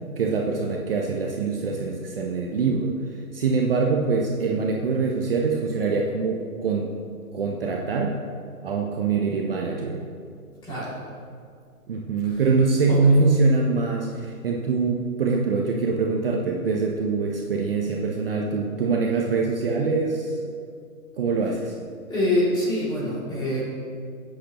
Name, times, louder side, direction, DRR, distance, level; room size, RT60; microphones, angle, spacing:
voice 1, 0.2-3.0 3.3-6.9 7.3-8.2 8.6-10.0 11.9-20.4 21.2-21.7, right 4 dB, 40° right, 0 dB, 0.8 m, -24 dB
voice 2, 10.6-10.9 12.2-12.4 12.9-13.2 22.1-23.6, left 1 dB, 10° left, -8 dB, 2.4 m, -25 dB
18.0 x 7.9 x 3.0 m, 2.3 s
hypercardioid pair, 165°, 44 cm